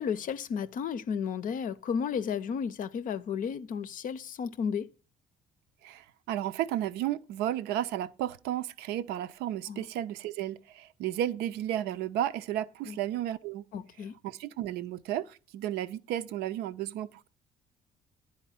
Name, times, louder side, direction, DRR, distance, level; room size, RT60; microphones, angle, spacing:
voice 1, 0.0-4.9 9.7-9.9 12.9-13.0 13.7-14.1, left 7 dB, 45° left, 0.6 m, -33 dB
voice 2, 5.8-13.6 14.2-17.3, right 12 dB, 55° right, 0.5 m, -33 dB
10.5 x 4.3 x 7.2 m
figure-of-eight pair, 50°, 19 cm